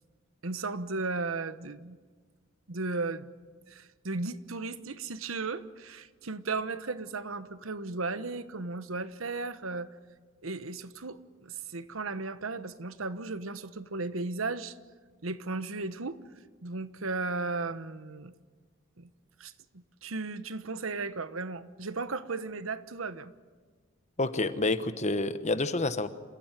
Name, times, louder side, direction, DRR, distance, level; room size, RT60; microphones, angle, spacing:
voice 1, 0.4-2.0 2.7-3.3 3.7-9.9 10.4-14.8 15.2-16.2 16.6-18.3 19.0-19.1 19.4-23.3, right 3 dB, 85° right, 13 dB, 1.1 m, -35 dB
voice 2, 24.2-26.1, left 2 dB, 35° left, 11 dB, 1.1 m, -28 dB
27.5 x 15.5 x 9.2 m, 1.5 s
head